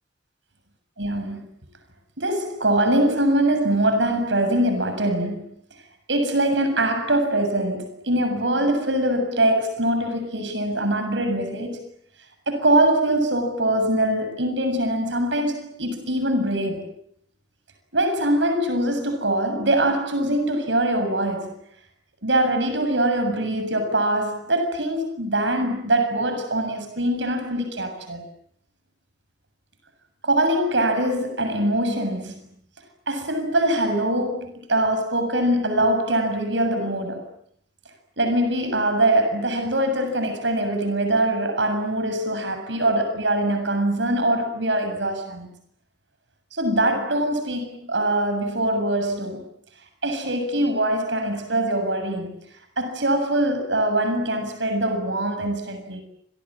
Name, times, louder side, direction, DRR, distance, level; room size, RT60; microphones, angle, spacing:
voice 1, 1.0-1.5 2.2-5.5 6.1-11.8 12.5-16.9 17.9-21.5 22.2-28.2 30.2-32.4 33.1-37.2 38.2-45.5 46.5-49.4 50.0-52.3 52.8-56.0, right 1 dB, 80° right, 7.3 m, -23 dB
29.0 x 26.0 x 7.6 m
head